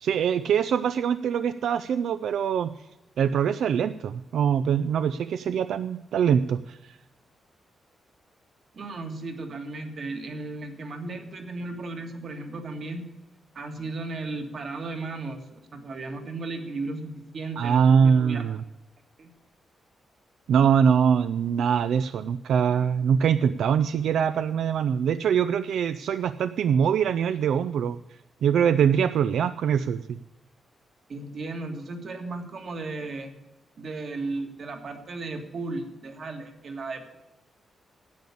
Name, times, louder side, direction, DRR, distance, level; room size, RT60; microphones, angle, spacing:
voice 1, 0.0-2.7 3.2-7.0 17.6-18.6 20.5-28.0 28.4-30.2, right 7 dB, 80° right, 12 dB, 0.4 m, -23 dB
voice 2, 8.7-13.1 13.6-18.4 19.2-19.4 31.1-33.3 33.8-37.2, right 3 dB, 45° right, 5 dB, 1.7 m, -35 dB
10.5 x 8.5 x 8.4 m, 0.99 s
wide cardioid pair, 165°, 0 cm